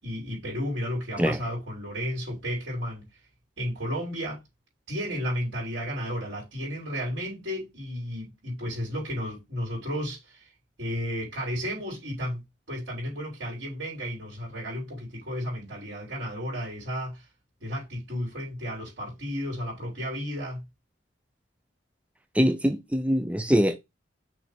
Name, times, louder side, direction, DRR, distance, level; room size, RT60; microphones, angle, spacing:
voice 1, 0.0-3.1 3.6-4.4 4.9-10.5 10.8-12.4 12.7-17.3 17.6-20.6, equal, 80° right, 3.7 m, -33 dB
voice 2, 22.3-23.8, equal, 5° right, 0.5 m, -23 dB
6.2 x 3.4 x 5.0 m
head